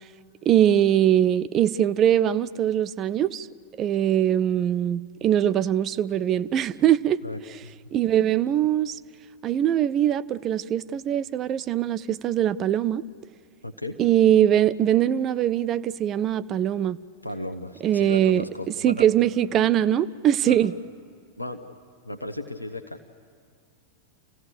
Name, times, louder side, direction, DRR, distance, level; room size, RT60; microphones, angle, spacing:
voice 1, 0.5-3.5 3.8-7.2 7.9-9.0 9.4-13.0 14.0-17.0 17.8-18.4 18.8-20.8, right 11 dB, 30° right, 0.5 m, -22 dB
voice 2, 7.2-7.7 13.6-14.0 17.2-19.1 20.5-20.6 21.4-21.6 22.0-23.0, left 2 dB, 85° left, 0.9 m, -35 dB
29.0 x 15.5 x 6.8 m
figure-of-eight pair, 90°, 0 cm